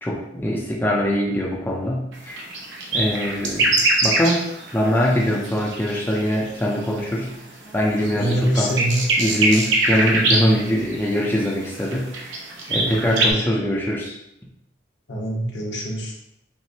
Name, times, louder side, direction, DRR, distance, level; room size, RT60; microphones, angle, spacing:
voice 1, 0.0-2.5 2.9-4.5 4.7-7.4 7.7-8.7 9.2-12.3 12.7-14.2, equal, 10° left, -3 dB, 0.5 m, -23 dB
sound 1, 2.1-7.2 7.7-13.3, right 2 dB, 75° right, 0.7 m, -23 dB
voice 2, 8.1-9.0 10.1-10.6 12.7-13.4 15.1-16.1, right 1 dB, 65° left, -1 dB, 0.9 m, -25 dB
5.8 x 2.1 x 2.7 m, 0.80 s
head